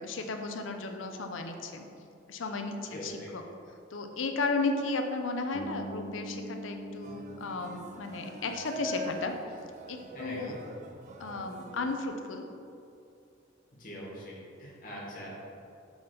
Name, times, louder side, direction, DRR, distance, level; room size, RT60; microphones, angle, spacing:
voice 1, 0.0-1.9 2.3-3.4 3.9-9.4 9.9-10.6 11.2-12.4, left 3 dB, 85° left, 5 dB, 0.6 m, -34 dB
voice 2, 2.9-3.3 10.1-10.5 13.8-15.3, equal, 45° left, -5 dB, 1.5 m, -42 dB
Bass guitar, 5.5-9.5, equal, 65° left, 0.9 m, -43 dB
sound 1, 7.0-12.1, right 1 dB, 40° right, 0.4 m, -44 dB
6.2 x 3.5 x 5.1 m, 2.6 s
head